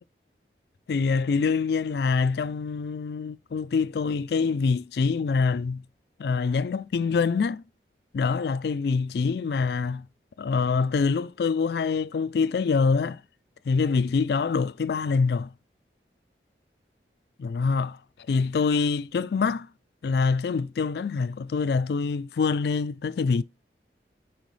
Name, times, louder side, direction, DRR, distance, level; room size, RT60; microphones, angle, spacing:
voice 1, 0.9-5.8 6.2-7.6 8.1-10.1 10.4-13.2 13.7-15.5 17.4-18.0 18.3-19.7 20.0-23.4, left 5 dB, 65° left, 0.3 m, -25 dB
9.1 x 4.7 x 3.2 m
head